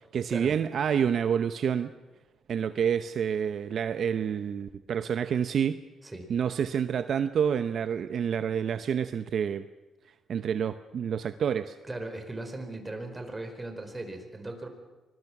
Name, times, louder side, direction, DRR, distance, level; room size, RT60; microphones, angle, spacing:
voice 1, 0.1-1.9 2.5-5.7 6.3-9.6 10.3-11.7, right 8 dB, 60° right, 11 dB, 0.8 m, -28 dB
voice 2, 11.9-14.7, right 2 dB, 15° right, 6 dB, 4.7 m, -38 dB
25.0 x 21.0 x 6.1 m, 1.2 s
cardioid pair, 90°, 0 cm